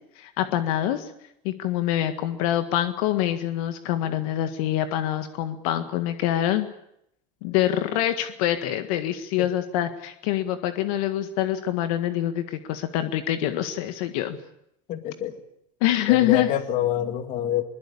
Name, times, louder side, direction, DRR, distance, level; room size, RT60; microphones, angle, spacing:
voice 1, 0.2-1.1 1.4-6.7 7.4-14.4 15.8-16.5, left 12 dB, 75° left, 8 dB, 1.7 m, -25 dB
voice 2, 14.9-15.4 16.1-17.6, left 11 dB, 45° left, 8 dB, 2.3 m, -26 dB
22.0 x 21.0 x 8.6 m, 0.76 s
cardioid pair, 150°, 19 cm